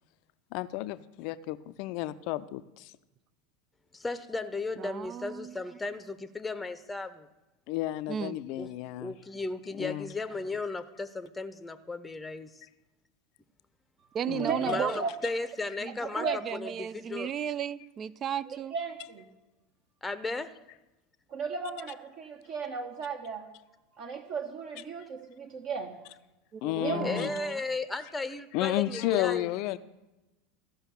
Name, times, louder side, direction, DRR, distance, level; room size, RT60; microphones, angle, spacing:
voice 1, 0.5-2.9 7.7-9.1 9.8-10.1 14.3-14.8 26.6-27.3 28.5-29.8, left 16 dB, 55° left, 0.5 m, -32 dB
voice 2, 3.9-7.3 8.6-8.7 9.0-12.6 14.6-17.3 20.0-20.5 27.0-29.5, left 3 dB, 10° left, 0.7 m, -35 dB
voice 3, 4.7-5.5 8.1-8.4 14.1-15.1 15.8-18.7 26.5-27.6, right 8 dB, 35° right, 0.4 m, -35 dB
voice 4, 14.4-15.1 16.2-16.4 16.6-16.7 18.7-19.3 21.3-23.5 24.0-26.0 26.8-27.2 29.0-29.1, right 5 dB, 50° right, 1.1 m, -35 dB
14.5 x 5.5 x 7.0 m
figure-of-eight pair, 80°, 0 cm